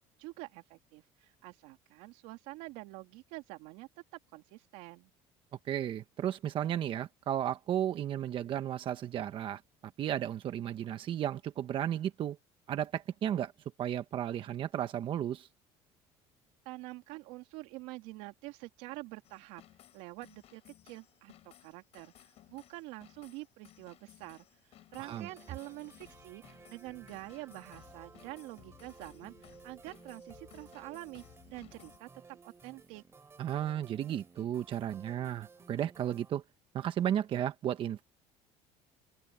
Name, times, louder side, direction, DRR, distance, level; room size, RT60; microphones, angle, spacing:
voice 1, 0.0-3.9 4.3-5.1 16.6-19.6 19.9-24.4 24.9-33.0, right 21 dB, 80° right, 3.0 m, -47 dB
voice 2, 5.6-9.6 10.0-12.4 12.7-13.5 13.8-15.5 25.0-25.3 33.4-36.4 36.7-38.0, right 10 dB, 45° right, 1.1 m, -34 dB
sound 1, 19.2-32.0, left 14 dB, 55° left, 6.1 m, -59 dB
sound 2, 25.0-36.3, right 4 dB, 20° right, 3.6 m, -57 dB
cardioid pair, 125°, 12 cm